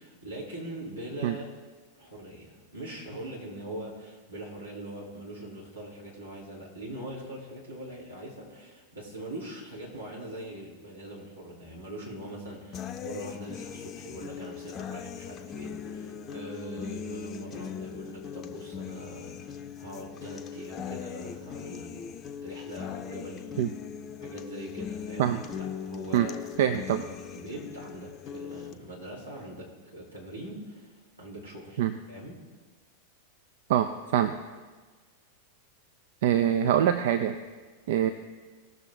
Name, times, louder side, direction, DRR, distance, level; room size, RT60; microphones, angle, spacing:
voice 1, 0.0-1.5 2.0-22.1 22.4-23.5 24.2-26.4 26.7-30.9 31.2-32.4, right 1 dB, 80° right, -5 dB, 3.2 m, -42 dB
sound 1, 12.7-28.7, left 8 dB, 30° left, 0.6 m, -40 dB
voice 2, 26.6-27.0 31.8-32.0 33.7-34.3 36.2-37.4 37.9-38.1, right 10 dB, 55° right, 9 dB, 0.5 m, -24 dB
18.5 x 6.6 x 3.7 m, 1.4 s
figure-of-eight pair, 90°, 0 cm